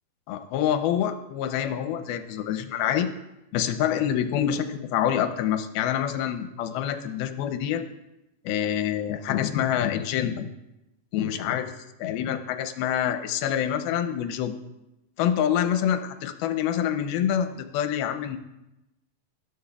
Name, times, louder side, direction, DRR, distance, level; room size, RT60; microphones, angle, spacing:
voice 1, 0.3-3.1 3.5-7.8 8.5-10.5 11.1-11.7 12.0-14.5 15.2-18.4, left 10 dB, 80° left, 8 dB, 2.5 m, -26 dB
19.5 x 12.5 x 2.3 m, 0.92 s
omnidirectional pair, 4.6 m